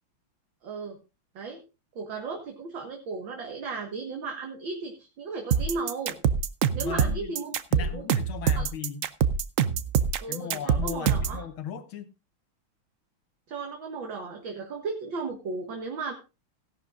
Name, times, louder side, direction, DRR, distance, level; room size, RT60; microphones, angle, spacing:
voice 1, 0.6-1.0 1.4-1.6 2.0-6.1 6.7-8.0 8.5-8.7 10.2-11.4 13.5-16.1, right 4 dB, 65° right, 2.3 m, -35 dB
sound 1, 5.5-11.4, right 7 dB, 85° right, 0.7 m, -24 dB
voice 2, 6.7-7.3 7.7-9.1 10.3-12.1, left 8 dB, 75° left, 2.0 m, -37 dB
16.5 x 11.5 x 2.5 m
omnidirectional pair, 2.3 m